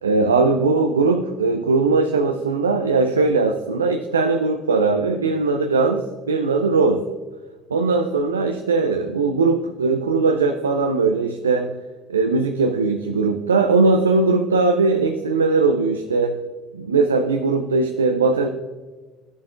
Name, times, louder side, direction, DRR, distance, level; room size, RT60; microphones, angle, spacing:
voice 1, 0.0-7.0 7.7-11.7 12.1-16.4 16.7-18.5, right 3 dB, 85° right, 6 dB, 0.4 m, -19 dB
12.0 x 7.8 x 2.4 m, 1.3 s
figure-of-eight pair, 60°, 0 cm